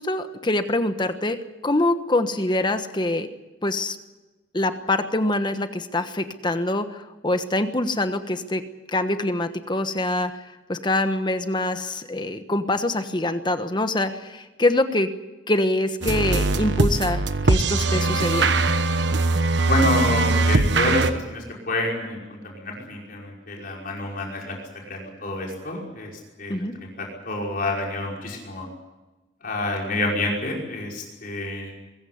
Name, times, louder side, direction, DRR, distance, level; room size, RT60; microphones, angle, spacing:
voice 1, 0.0-1.4 1.6-3.3 3.6-4.0 4.5-8.6 8.9-10.3 10.7-15.1 15.5-18.6 26.5-26.8, left 1 dB, 25° left, 9 dB, 1.2 m, -24 dB
sound 1, 16.0-21.1, right 2 dB, 65° right, 1.3 m, -21 dB
voice 2, 19.6-24.6 24.9-26.1 26.4-28.7 29.4-31.7, left 1 dB, 50° left, -1 dB, 5.4 m, -28 dB
23.5 x 15.0 x 9.6 m, 1.1 s
head